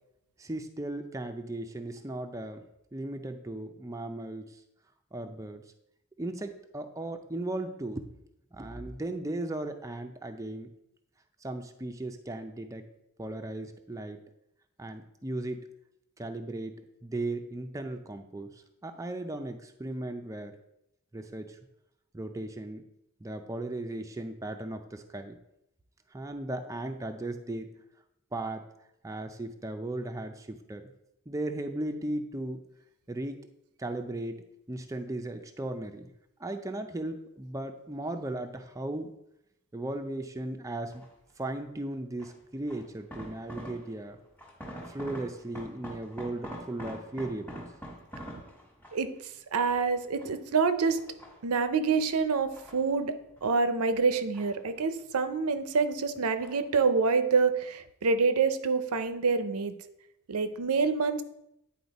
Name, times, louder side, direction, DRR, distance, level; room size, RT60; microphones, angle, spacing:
voice 1, 0.4-2.6 2.9-4.6 5.1-5.6 6.2-8.1 8.5-10.7 11.4-12.9 13.2-14.2 14.8-15.6 16.2-16.8 17.0-20.6 21.1-21.6 22.1-22.9 23.2-25.4 26.1-27.8 28.3-28.7 29.0-30.9 31.3-32.7 33.1-33.5 33.8-36.1 36.4-39.1 39.7-41.0 41.4-44.2 44.9-47.6, right 1 dB, 15° right, 6 dB, 0.4 m, -36 dB
sound 1, 40.9-41.3 42.2-44.1 44.4-49.2 49.7-50.6 51.0-51.8 52.3-53.7 53.9-55.1 55.4-56.0 56.4-56.8 57.1-57.2, right 1 dB, 10° left, 1.2 m, -45 dB
voice 2, 49.5-51.0 51.4-59.7 60.3-61.2, right 4 dB, 85° right, 10 dB, 0.6 m, -27 dB
9.4 x 4.2 x 4.1 m, 0.82 s
head